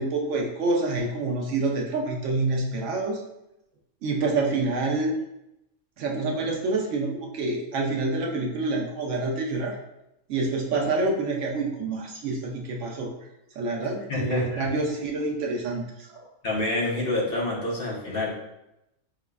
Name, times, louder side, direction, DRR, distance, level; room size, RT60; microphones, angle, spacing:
voice 1, 0.0-3.2 4.0-5.2 6.0-9.8 10.3-13.1 13.6-16.2, right 3 dB, 75° right, -1 dB, 0.9 m, -27 dB
voice 2, 14.1-14.7 16.4-18.4, left 2 dB, 50° left, -4 dB, 0.8 m, -27 dB
4.8 x 2.1 x 2.2 m, 0.87 s
omnidirectional pair, 1.3 m